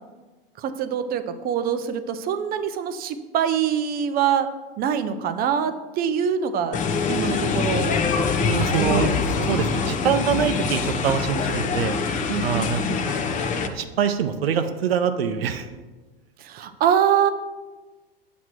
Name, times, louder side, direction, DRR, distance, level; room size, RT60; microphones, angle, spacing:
voice 1, 0.6-4.5 4.8-8.0 8.8-9.5 12.3-13.1 16.4-17.3, right 8 dB, 30° right, 10 dB, 0.5 m, -24 dB
sound 1, 6.7-13.7, left 5 dB, 25° left, 0.6 m, -24 dB
voice 2, 8.4-9.1 9.5-12.0 12.4-13.2 13.6-15.7, right 7 dB, 80° right, 8 dB, 0.6 m, -24 dB
7.8 x 3.1 x 6.0 m, 1.2 s
hypercardioid pair, 100°, 29 cm